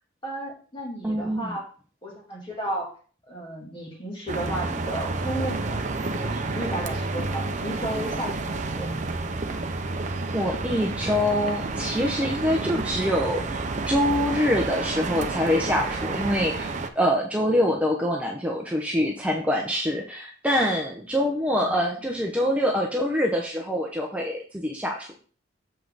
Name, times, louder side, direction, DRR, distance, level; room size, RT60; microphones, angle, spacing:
voice 1, 0.2-1.7 2.0-2.9 3.3-5.8 6.1-9.0 21.5-21.8, right 1 dB, 25° left, -3 dB, 3.0 m, -34 dB
voice 2, 1.0-1.6 10.3-25.2, equal, 5° right, -1 dB, 0.8 m, -25 dB
sound 1, 4.3-16.9, right 3 dB, 40° right, 0.7 m, -30 dB
7.6 x 5.5 x 4.0 m, 0.41 s
head